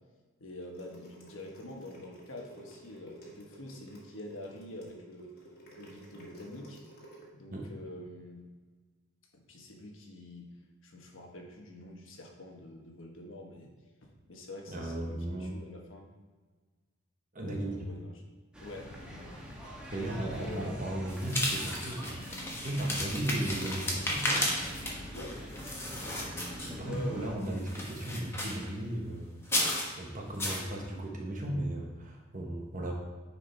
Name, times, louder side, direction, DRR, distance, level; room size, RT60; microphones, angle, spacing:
voice 1, 0.4-5.3 5.8-6.8 7.3-8.4 9.3-10.5 10.8-13.7 14.3-16.1 17.4-18.1 18.6-19.3 20.1-20.8 24.9-25.4 26.8-27.3, left 1 dB, 70° left, 1 dB, 1.3 m, -46 dB
sound 1, 0.6-7.3, right 1 dB, 50° left, 1.8 m, -53 dB
voice 2, 14.7-15.5 17.3-17.8 19.6-24.3 26.6-32.9, right 1 dB, 40° right, 0 dB, 1.2 m, -36 dB
sound 2, 18.5-27.4, equal, 5° right, 1.2 m, -44 dB
sound 3, 21.1-27.0 27.4-28.7 29.4-29.9 30.4-30.6, left 1 dB, 10° left, 1.2 m, -34 dB
9.6 x 4.9 x 3.4 m, 1.4 s
head